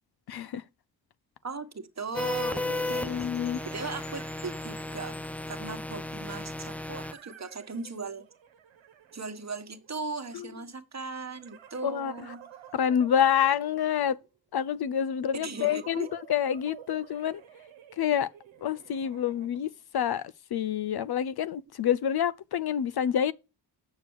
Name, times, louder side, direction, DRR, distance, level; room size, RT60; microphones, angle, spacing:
voice 1, 0.3-0.6 2.9-3.6 10.3-10.5 11.8-12.1 12.7-14.2 14.5-17.4 18.0-18.3 18.6-23.3, left 9 dB, 55° left, 0.6 m, -27 dB
voice 2, 1.4-3.3 3.6-5.2 5.5-8.3 9.1-12.4 15.3-16.1, right 4 dB, 35° right, 1.4 m, -38 dB
sound 1, 1.6-1.7 3.0-5.4 6.6-10.1 11.3-14.4 15.5-19.8, right 9 dB, 75° right, 1.2 m, -52 dB
sound 2, 2.1-7.1, left 2 dB, 5° left, 0.3 m, -34 dB
Percussion / Wind chime, 2.9-7.5, left 4 dB, 70° left, 3.7 m, -55 dB
6.9 x 6.7 x 4.7 m
supercardioid pair, 40°, 46 cm